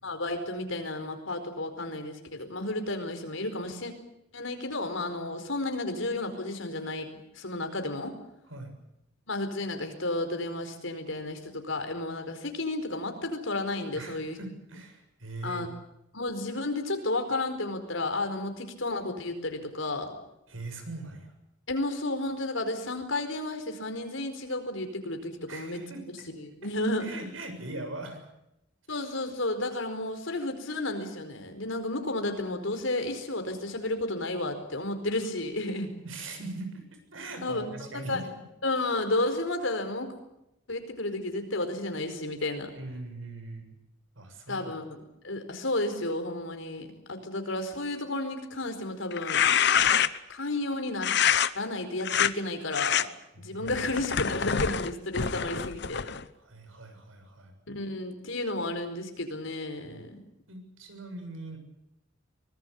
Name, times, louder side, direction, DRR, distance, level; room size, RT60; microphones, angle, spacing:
voice 1, 0.0-3.9 4.3-7.1 7.3-8.1 9.3-14.4 15.4-15.8 16.1-20.1 21.7-25.8 26.1-27.1 28.9-35.9 37.4-38.2 38.6-40.1 40.7-42.7 44.5-49.4 50.3-51.1 51.5-53.1 53.4-56.1 57.7-60.2, left 2 dB, 80° left, 7 dB, 4.7 m, -32 dB
voice 2, 13.9-15.6 20.5-21.3 25.5-26.0 27.0-28.2 36.0-38.3 42.7-43.7 44.2-44.7 53.3-53.9 56.4-57.5 59.8-60.1 60.5-61.6, right 2 dB, 85° right, 6 dB, 7.1 m, -41 dB
sound 1, 49.1-50.3 51.0-51.5 52.0-52.3 52.7-53.0 53.7-56.2, left 8 dB, 55° left, 0.9 m, -26 dB
24.5 x 19.5 x 8.5 m, 0.86 s
head